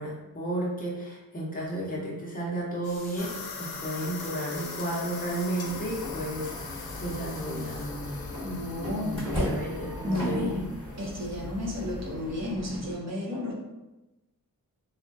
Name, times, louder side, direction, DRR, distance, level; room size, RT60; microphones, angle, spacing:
voice 1, 0.0-8.2 9.0-10.6, right 1 dB, 25° left, -5 dB, 0.7 m, -33 dB
sound 1, 2.8-7.9, left 2 dB, 65° left, 0.9 m, -47 dB
sound 2, 3.2-11.4, left 5 dB, 90° left, 0.5 m, -42 dB
sound 3, 5.6-12.9, left 1 dB, 15° right, 1.2 m, -37 dB
voice 2, 8.4-9.6 10.0-10.7 11.0-13.5, left 1 dB, 50° right, -3 dB, 0.8 m, -32 dB
3.6 x 2.2 x 2.6 m, 1.0 s
wide cardioid pair, 110°, 36 cm